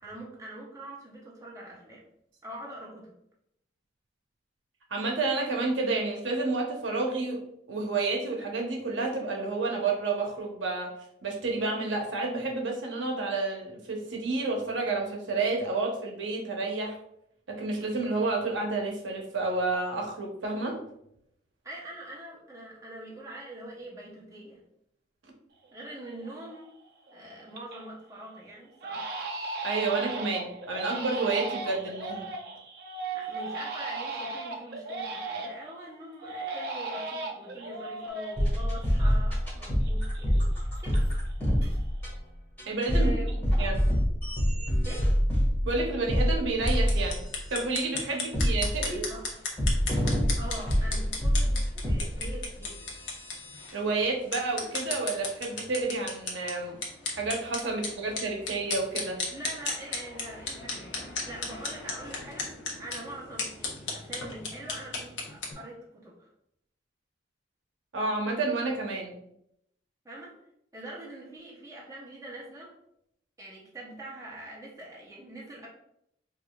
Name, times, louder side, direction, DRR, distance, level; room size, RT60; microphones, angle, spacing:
voice 1, 0.0-2.1 2.4-3.1 21.6-24.6 25.7-26.7 27.1-29.1 33.1-41.0 42.9-43.3 44.8-45.1 48.1-48.2 48.9-49.3 50.4-52.9 59.3-62.5 62.8-66.3 70.0-70.4 70.7-72.7 73.4-75.7, right 1 dB, 15° right, -4 dB, 0.7 m, -43 dB
voice 2, 4.9-7.4 7.7-10.9 11.2-17.0 17.5-20.8 29.6-32.2 42.7-43.1 43.6-43.8 45.6-47.2 47.5-49.0 53.7-56.7 57.2-59.2 67.9-69.1, right 3 dB, 85° right, 0 dB, 0.8 m, -30 dB
Crying sobbing, 25.6-25.7 26.2-26.7 27.1-27.9 28.2-28.4 28.8-35.7 36.2-39.5 39.8-41.3 41.6-42.1, right 3 dB, 55° right, 0.5 m, -37 dB
sound 1, 38.1-38.2 38.4-42.1 42.6-47.6 48.3-49.0 49.6-53.7, equal, 10° left, 1.4 m, -27 dB
sound 2, 46.6-65.5, left 3 dB, 80° left, 0.8 m, -36 dB
4.8 x 2.4 x 2.3 m, 0.76 s
head